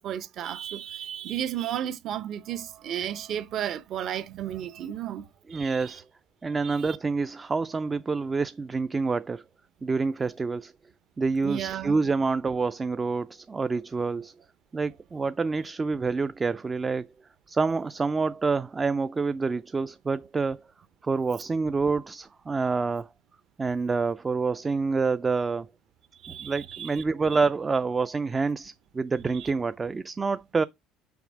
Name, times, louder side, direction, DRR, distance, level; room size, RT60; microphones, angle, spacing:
voice 1, 0.0-6.0 6.6-7.0 11.4-12.0 26.2-27.0 29.3-29.5, right 10 dB, 55° right, 0.8 m, -34 dB
voice 2, 5.5-6.0 6.4-9.4 9.8-10.7 11.2-14.3 14.7-17.1 17.5-20.6 21.0-23.1 23.6-25.7 26.3-30.6, right 4 dB, 25° right, 0.3 m, -27 dB
5.8 x 4.2 x 6.0 m
cardioid pair, 110°, 0 cm